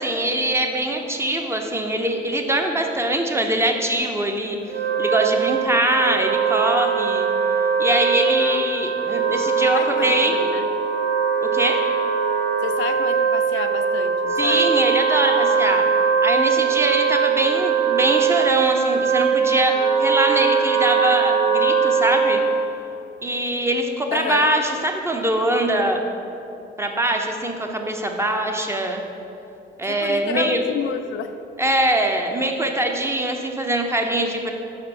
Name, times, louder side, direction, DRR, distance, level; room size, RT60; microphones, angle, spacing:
voice 1, 0.0-7.3 7.8-10.3 11.4-11.8 14.4-15.8 16.2-22.4 23.2-26.0 26.8-29.0 29.8-30.6 31.6-34.5, right 1 dB, 15° right, 3 dB, 0.7 m, -23 dB
Wind instrument woodwind instrument, 4.6-22.8, right 6 dB, 60° right, 0.7 m, -21 dB
voice 2, 9.7-10.7 12.6-14.7 24.1-24.5 29.8-31.3, left 8 dB, 75° left, 8 dB, 0.4 m, -30 dB
5.1 x 5.1 x 5.8 m, 2.8 s
cardioid pair, 90°, 20 cm